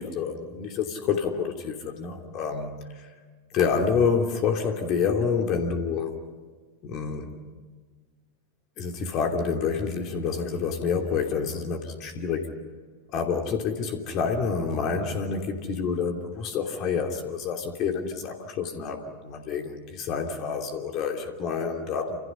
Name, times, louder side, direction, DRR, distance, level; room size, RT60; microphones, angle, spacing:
voice 1, 0.0-3.1 3.5-6.2 6.8-7.4 8.8-12.5 13.1-22.2, left 5 dB, 35° left, 4 dB, 3.0 m, -28 dB
29.0 x 27.5 x 5.7 m, 1.5 s
figure-of-eight pair, 90°, 0 cm